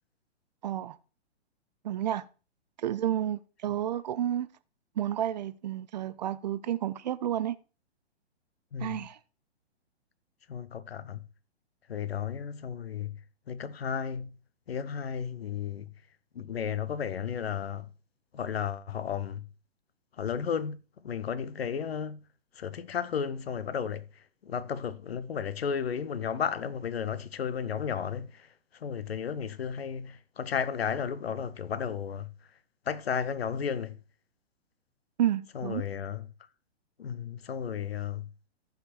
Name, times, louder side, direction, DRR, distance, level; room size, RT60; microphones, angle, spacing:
voice 1, 0.6-1.0 1.8-2.2 2.8-4.5 5.0-7.6 8.8-9.2 35.2-35.8, right 11 dB, 40° right, 0.5 m, -30 dB
voice 2, 8.7-9.1 10.5-11.2 11.9-13.2 13.5-14.3 14.7-15.9 16.3-17.9 18.3-19.5 20.2-22.2 22.6-24.0 24.4-28.5 28.8-32.3 32.9-34.0 35.5-36.2 37.0-38.3, left 7 dB, 65° left, 0.8 m, -33 dB
14.5 x 5.1 x 4.3 m
figure-of-eight pair, 115°, 33 cm